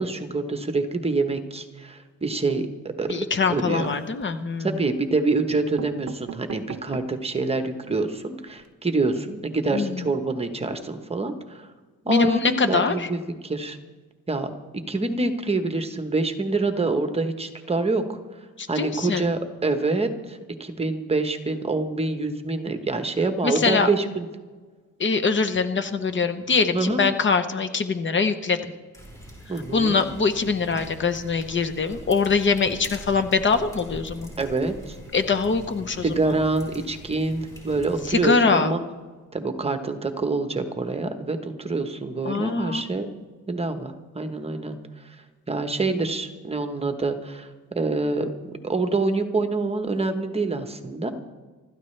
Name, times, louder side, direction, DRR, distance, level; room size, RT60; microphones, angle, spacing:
voice 1, 0.0-2.6 3.0-3.1 3.5-3.9 4.6-11.7 12.0-13.8 14.3-14.5 14.9-18.2 18.7-24.3 26.7-27.0 29.5-30.0 34.4-35.0 36.0-38.8 39.3-43.1 43.5-48.3 48.6-51.1, right 3 dB, 20° right, 7 dB, 1.1 m, -26 dB
voice 2, 3.1-4.7 9.7-10.1 12.1-13.1 18.6-19.3 23.4-23.9 25.0-28.6 29.7-34.3 35.1-36.4 38.0-38.7 42.2-42.8, left 4 dB, 35° left, 10 dB, 0.8 m, -23 dB
sound 1, 3.8-4.4 5.1-5.2 5.5-7.3 7.8-7.9 8.1-8.2 8.5-8.7, right 7 dB, 55° right, 0.8 m, -39 dB
sound 2, 28.9-38.3, equal, 10° left, 5.5 m, -43 dB
25.5 x 13.0 x 3.3 m, 1.4 s
cardioid pair, 150°, 32 cm